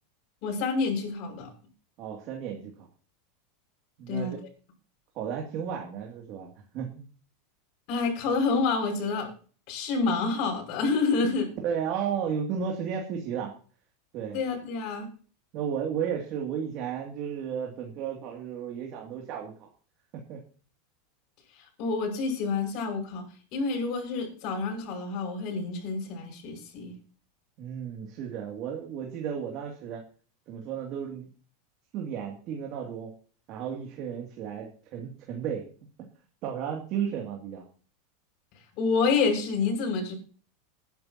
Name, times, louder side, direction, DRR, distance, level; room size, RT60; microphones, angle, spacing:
voice 1, 0.4-1.5 4.1-4.4 7.9-9.3 9.7-11.5 14.3-15.1 21.8-26.9 38.8-40.1, left 4 dB, 50° left, 0 dB, 5.9 m, -28 dB
voice 2, 2.0-2.9 4.0-4.4 5.1-7.0 11.6-13.5 14.1-14.4 15.5-19.5 20.3-20.4 27.6-30.0 30.5-31.3 31.9-33.1 33.5-35.7 36.4-37.6, right 8 dB, 45° right, 0 dB, 2.6 m, -33 dB
20.0 x 10.5 x 2.9 m, 0.41 s
supercardioid pair, 145°, 0 cm